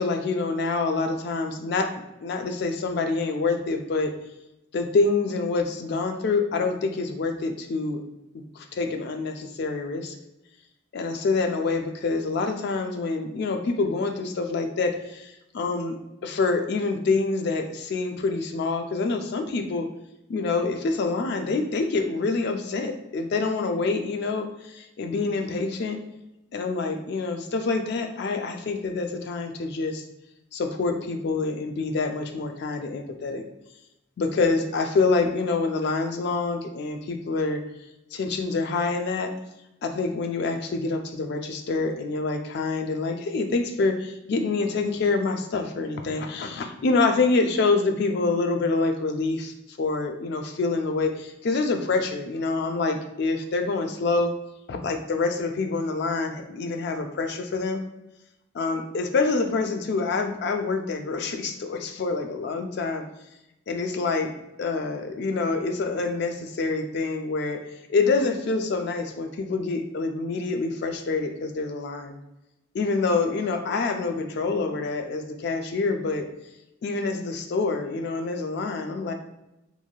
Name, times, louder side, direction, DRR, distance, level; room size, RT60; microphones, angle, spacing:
voice 1, 0.0-1.9 2.2-4.1 4.7-8.0 8.3-10.2 10.9-16.0 16.2-19.9 20.3-26.0 26.5-30.0 30.5-33.4 34.2-37.6 38.1-39.3 39.8-54.3 54.7-57.8 58.5-63.0 63.7-64.3 64.6-67.6 67.9-72.2 72.7-76.3 76.8-79.1, left 3 dB, 55° left, 5 dB, 0.3 m, -26 dB
3.0 x 2.6 x 2.3 m, 0.90 s
head